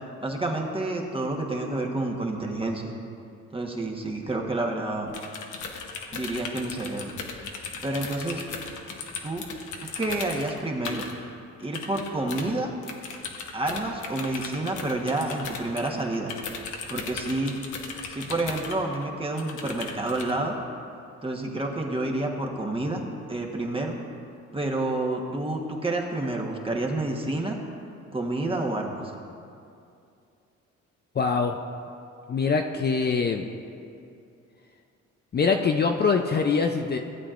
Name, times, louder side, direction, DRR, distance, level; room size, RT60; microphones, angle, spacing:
voice 1, 0.2-2.9 3.5-5.1 6.1-7.1 7.8-8.4 9.2-9.4 10.0-11.1 11.6-12.7 13.5-16.3 16.9-17.6 18.1-20.5 21.2-23.0 23.3-23.9 24.5-27.6 28.1-29.0, right 2 dB, 20° right, 0 dB, 1.2 m, -29 dB
sound 1, 5.1-11.1 11.6-12.5 12.8-19.1 19.4-20.3, left 5 dB, 80° left, 1.1 m, -37 dB
voice 2, 31.2-31.6 32.3-33.5 35.3-37.0, left 5 dB, 35° left, 4 dB, 0.5 m, -23 dB
16.0 x 8.4 x 2.5 m, 2.5 s
cardioid pair, 90°, 30 cm